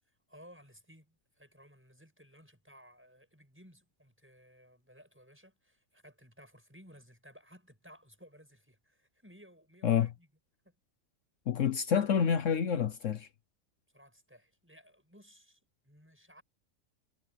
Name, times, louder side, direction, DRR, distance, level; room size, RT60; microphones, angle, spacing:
voice 1, 0.3-10.3 10.6-10.7 13.9-16.4, equal, 10° right, 6.9 m, -58 dB
voice 2, 11.5-13.3, left 7 dB, 65° left, 1.2 m, -28 dB
omnidirectional pair, 1.4 m